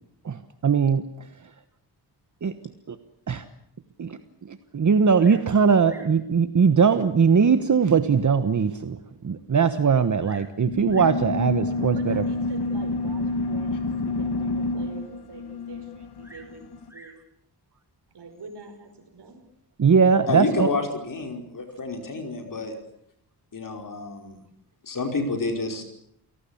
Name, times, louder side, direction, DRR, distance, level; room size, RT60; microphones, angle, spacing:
voice 1, 0.2-1.5 2.4-2.5 2.9-3.0 3.3-3.4 4.0-12.2 19.8-20.7, right 6 dB, 45° right, 11 dB, 1.2 m, -21 dB
Bird vocalization bird call bird song, 5.1-5.5 5.8-6.2 7.1-7.2 7.8-7.9 8.4-8.5 8.7-8.8 9.9-10.6 10.9-11.2 12.2-12.6 16.2-17.2 18.3-18.8, right 1 dB, 5° right, 4.5 m, -50 dB
sound 1, 10.7-16.9, left 2 dB, 70° left, 1.9 m, -28 dB
voice 2, 11.8-17.1 18.1-19.4, right 4 dB, 75° right, 7 dB, 5.3 m, -45 dB
voice 3, 20.3-22.8 23.5-24.4 24.8-25.8, left 3 dB, 50° left, 5 dB, 5.1 m, -29 dB
30.0 x 18.0 x 8.5 m, 0.72 s
wide cardioid pair, 165°, 41 cm